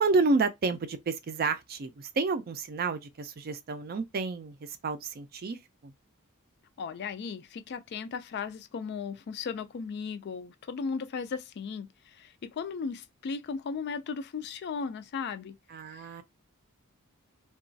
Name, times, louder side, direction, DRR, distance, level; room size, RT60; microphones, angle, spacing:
voice 1, 0.0-5.9 15.7-16.2, right 3 dB, 45° right, 0.4 m, -30 dB
voice 2, 6.8-15.6 15.9-16.0, left 5 dB, 50° left, 0.3 m, -36 dB
2.9 x 2.3 x 2.6 m
head